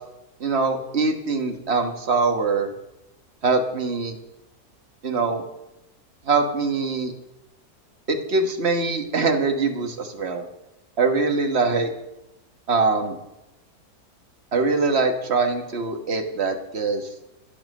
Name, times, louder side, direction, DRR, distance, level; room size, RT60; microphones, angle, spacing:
voice 1, 0.4-2.7 3.4-4.2 5.0-5.4 6.2-7.1 8.1-10.4 11.0-11.9 12.7-13.2 14.5-17.1, right 4 dB, 45° right, 5 dB, 1.6 m, -23 dB
11.5 x 10.5 x 6.4 m, 0.94 s
omnidirectional pair, 1.6 m